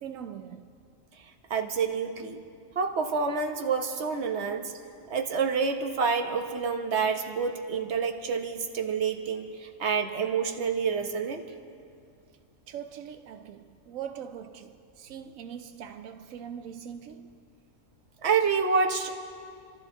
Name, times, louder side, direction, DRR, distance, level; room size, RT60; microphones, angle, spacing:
voice 1, 0.0-0.7 12.7-17.4, right 8 dB, 90° right, 1.0 m, -41 dB
voice 2, 1.5-2.4 2.7-4.7 5.1-11.4 18.2-19.2, right 5 dB, 60° right, 1.3 m, -28 dB
28.0 x 13.5 x 3.8 m
omnidirectional pair, 1.3 m